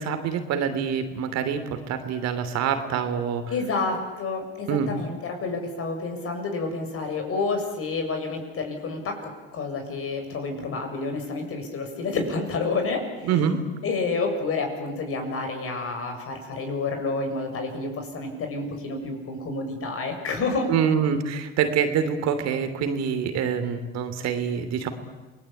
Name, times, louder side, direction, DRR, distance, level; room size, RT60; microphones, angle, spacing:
voice 1, 0.0-1.6 1.9-3.4 4.7-4.9 13.3-13.6 20.7-24.9, right 7 dB, 60° right, 9 dB, 3.1 m, -25 dB
voice 2, 3.5-13.5 13.8-20.7, left 3 dB, 50° left, 4 dB, 7.3 m, -29 dB
28.5 x 20.0 x 8.8 m, 1.2 s
hypercardioid pair, 70°, 30 cm